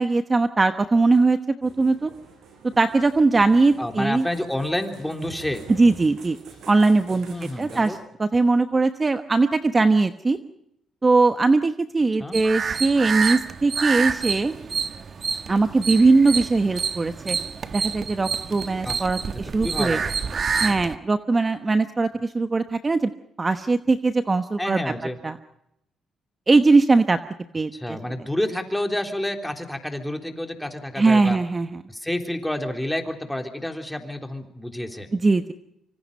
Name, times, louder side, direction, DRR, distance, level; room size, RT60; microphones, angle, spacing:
voice 1, 0.0-2.1 2.8-4.3 5.7-6.4 6.7-10.4 11.0-14.5 15.5-17.4 17.7-20.0 20.6-23.1 23.4-24.8 25.2-25.4 26.5-27.2 27.5-28.0 31.0-31.8 35.2-35.5, right 3 dB, 25° right, 9 dB, 1.1 m, -20 dB
sound 1, 1.6-7.9, right 5 dB, 75° right, 6.1 m, -45 dB
voice 2, 3.8-5.6 7.3-8.0 12.2-12.4 18.8-19.1 19.3-20.4 22.1-22.2 24.6-25.2 27.7-31.4 31.9-35.1, left 1 dB, 5° left, 4 dB, 3.5 m, -29 dB
sound 2, 12.3-21.0, right 5 dB, 45° right, 1.3 m, -28 dB
25.5 x 25.5 x 5.5 m, 0.79 s
cardioid pair, 90°, 0 cm